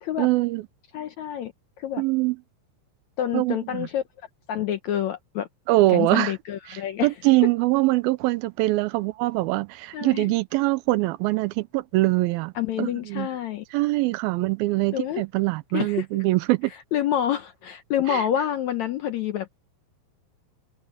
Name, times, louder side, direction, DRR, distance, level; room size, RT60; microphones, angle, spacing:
voice 1, 0.2-0.6 2.0-2.4 3.3-3.9 5.7-6.3 6.7-12.5 12.8-13.3 13.7-16.7 18.1-18.2, right 20 dB, 85° right, 2.5 m, -23 dB
voice 2, 0.9-1.5 1.8-2.0 3.2-4.0 4.5-5.5 5.9-7.1 7.4-7.5 9.9-10.3 12.6-13.6 14.9-15.2 15.7-16.1 16.9-19.5, left 10 dB, 70° left, 1.7 m, -27 dB
omnidirectional pair, 4.2 m